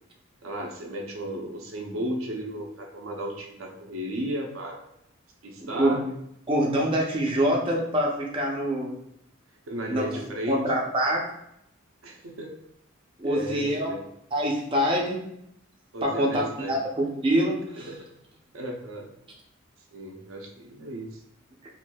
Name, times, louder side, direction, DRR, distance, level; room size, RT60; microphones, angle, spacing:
voice 1, 0.4-4.8 5.4-6.0 9.7-10.6 12.0-12.5 13.2-14.0 15.9-16.8 17.8-18.0 18.5-19.1 19.9-21.2, right 1 dB, 80° right, 1 dB, 0.6 m, -34 dB
voice 2, 5.6-6.0 6.5-8.9 9.9-10.1 10.5-11.2 13.2-13.9 14.3-15.2 16.0-17.9, equal, 25° right, -2 dB, 0.5 m, -25 dB
4.3 x 2.5 x 2.2 m, 0.78 s
head